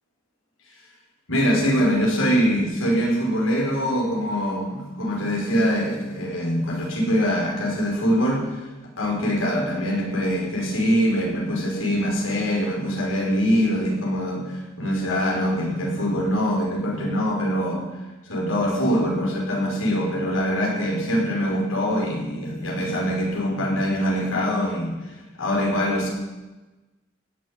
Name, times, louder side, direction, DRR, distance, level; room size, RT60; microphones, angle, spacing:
voice 1, 1.3-8.7 9.0-18.0 18.2-26.1, equal, 90° left, -2 dB, 6.0 m, -23 dB
16.5 x 7.8 x 10.0 m, 1.1 s
head